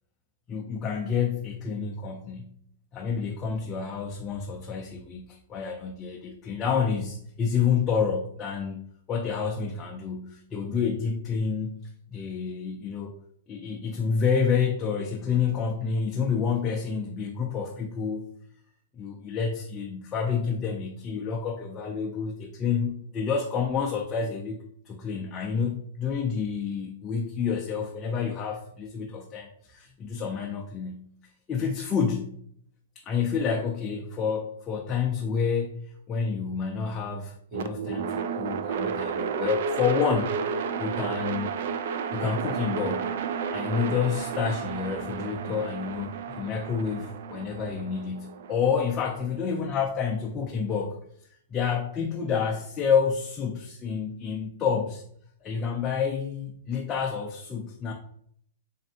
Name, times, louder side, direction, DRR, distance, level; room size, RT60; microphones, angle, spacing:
voice 1, 0.5-2.5 2.9-8.8 9.1-11.7 12.1-13.1 13.5-18.3 19.0-24.6 24.9-31.0 31.5-32.4 33.1-41.5 42.1-43.2 43.5-51.0 51.5-55.0 55.4-57.9, left 6 dB, 20° left, 0 dB, 0.4 m, -29 dB
sound 1, 37.5-49.6, right 6 dB, 55° right, 0.3 m, -32 dB
4.2 x 3.2 x 2.8 m, 0.65 s
hypercardioid pair, 165°, 0 cm